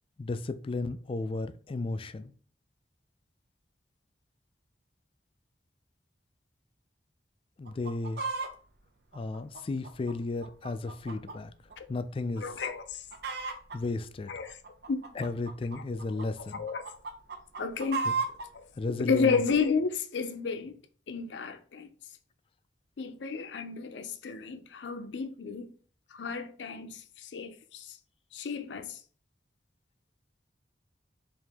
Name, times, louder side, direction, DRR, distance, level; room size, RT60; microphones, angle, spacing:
voice 1, 0.2-2.3 7.6-8.2 9.1-11.5 11.9-12.5 13.7-14.3 15.2-16.7 18.0-18.1 18.8-19.4, left 3 dB, 30° left, 0.3 m, -34 dB
Chicken rooster, 7.7-8.5 9.1-11.4 11.7-11.8 12.4-12.6 12.9-13.8 14.5-16.2 16.7-18.5 19.1-19.2, right 4 dB, 60° right, 0.7 m, -35 dB
voice 2, 12.4-13.0 14.3-14.6 14.9-15.1 16.1-16.2 16.5-16.8 17.6-18.0 18.5-18.6 19.0-20.8 21.1-21.9 23.0-25.7 26.1-28.0 28.3-29.0, left 5 dB, 80° left, 0.5 m, -32 dB
4.7 x 2.6 x 3.4 m
head